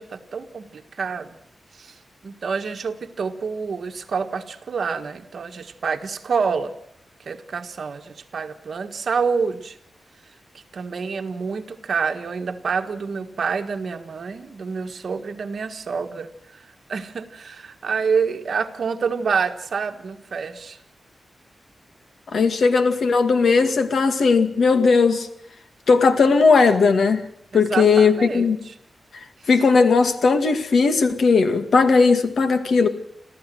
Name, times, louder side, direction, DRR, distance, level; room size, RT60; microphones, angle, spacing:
voice 1, 0.0-1.3 1.8-1.9 2.2-6.7 7.2-9.8 10.7-16.3 16.9-20.8 27.5-28.5, right 5 dB, 60° right, 7 dB, 1.6 m, -27 dB
voice 2, 22.3-25.3 25.9-27.3 27.5-28.6 29.5-32.9, left 4 dB, 65° left, 8 dB, 2.2 m, -17 dB
26.5 x 15.0 x 7.8 m, 0.72 s
wide cardioid pair, 160°, 0 cm